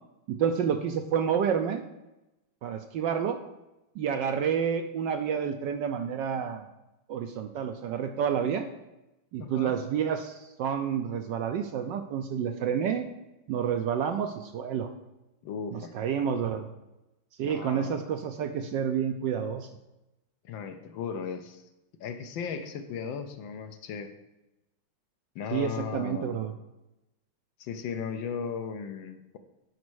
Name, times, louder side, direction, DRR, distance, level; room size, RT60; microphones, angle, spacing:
voice 1, 0.3-1.8 2.6-3.4 4.0-6.7 7.1-8.7 9.3-13.1 13.5-14.9 15.7-16.7 17.4-19.7 25.5-26.5, right 8 dB, 75° right, 7 dB, 1.1 m, -29 dB
voice 2, 9.4-9.7 15.4-15.9 17.4-18.0 20.4-21.6 22.0-24.1 25.3-26.4 27.6-29.4, left 6 dB, 70° left, 8 dB, 1.4 m, -36 dB
9.5 x 5.2 x 6.2 m, 0.97 s
omnidirectional pair, 2.4 m